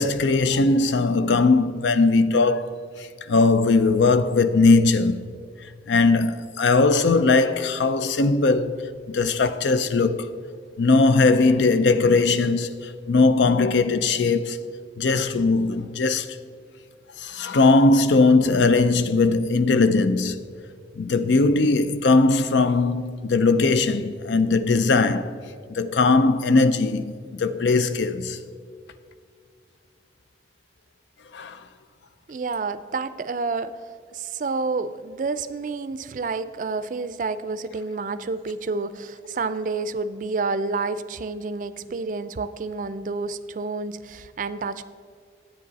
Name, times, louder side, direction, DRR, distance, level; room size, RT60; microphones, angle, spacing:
voice 1, 0.0-2.8 3.3-5.2 5.9-10.3 10.8-12.7 13.1-14.6 15.0-16.3 17.2-20.4 21.0-25.4 25.7-28.4 31.3-31.6, left 3 dB, 85° left, 0.5 m, -19 dB
voice 2, 32.3-33.7 34.1-44.8, right 4 dB, 45° right, 0.4 m, -29 dB
10.0 x 8.8 x 4.1 m
head